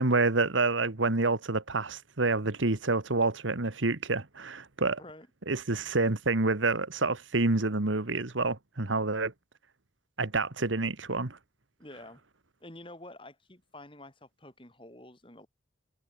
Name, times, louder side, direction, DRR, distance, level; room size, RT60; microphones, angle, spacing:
voice 1, 0.0-5.0 5.5-9.3 10.2-11.4, right 3 dB, 80° right, 1.6 m, -28 dB
voice 2, 11.8-12.2 12.6-15.5, left 1 dB, 25° left, 4.1 m, -48 dB
head